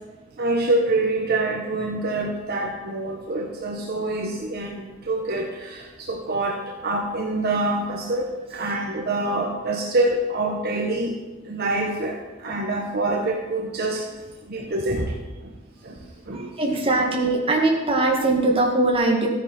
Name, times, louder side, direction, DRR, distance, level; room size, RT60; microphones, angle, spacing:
voice 1, 0.4-11.2 11.4-14.0 14.5-15.1 15.8-16.0 16.3-16.5, right 2 dB, 50° right, 0 dB, 1.2 m, -26 dB
voice 2, 16.3-19.3, right 2 dB, 30° right, -1 dB, 2.1 m, -21 dB
14.0 x 9.8 x 4.3 m, 1.2 s
head